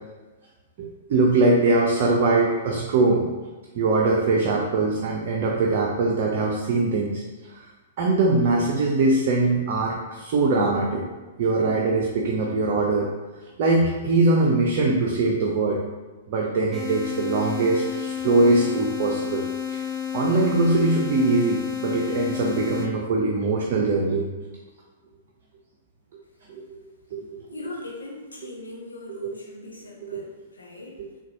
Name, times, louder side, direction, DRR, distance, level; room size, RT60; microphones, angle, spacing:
voice 1, 0.8-3.3 3.8-7.2 8.0-11.0 11.4-13.1 13.6-15.8 16.3-19.8 20.1-24.3 26.5-26.8 27.1-27.4 29.2-29.3 30.1-30.2, right 3 dB, 45° right, -2 dB, 0.4 m, -22 dB
sound 1, 16.7-22.9, left 8 dB, 5° right, 0.6 m, -31 dB
voice 2, 27.5-31.1, left 2 dB, 80° left, -2 dB, 0.7 m, -40 dB
3.9 x 2.2 x 2.7 m, 1.2 s
figure-of-eight pair, 110°, 0 cm